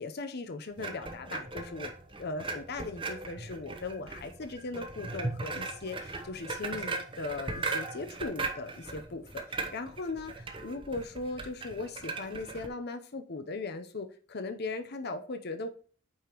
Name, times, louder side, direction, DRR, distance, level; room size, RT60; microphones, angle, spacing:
voice 1, 0.0-1.9 2.2-15.7, left 3 dB, 50° left, 8 dB, 0.7 m, -38 dB
sound 1, 0.8-12.7, right 3 dB, 25° right, 0.9 m, -38 dB
8.4 x 5.0 x 3.0 m, 0.42 s
head